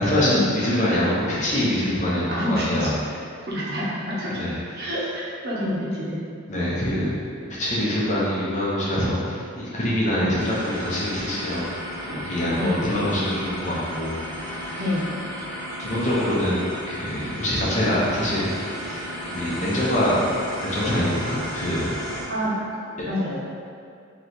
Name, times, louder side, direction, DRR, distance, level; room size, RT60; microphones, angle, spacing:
voice 1, 0.0-2.9 4.3-4.9 6.5-7.1 7.5-11.7 12.0-14.2 14.5-14.8 15.8-20.2 20.6-21.9, left 1 dB, 35° left, -7 dB, 0.8 m, -25 dB
voice 2, 2.3-2.9 3.4-4.4 4.7-5.0 5.4-6.2 10.2-10.3 12.6-12.8 14.8-15.1 22.3-22.6 23.1-23.4, equal, 50° right, -7 dB, 0.9 m, -27 dB
sound 1, 10.4-22.2, equal, 85° right, 1.1 m, -34 dB
3.1 x 3.0 x 4.2 m, 2.3 s
head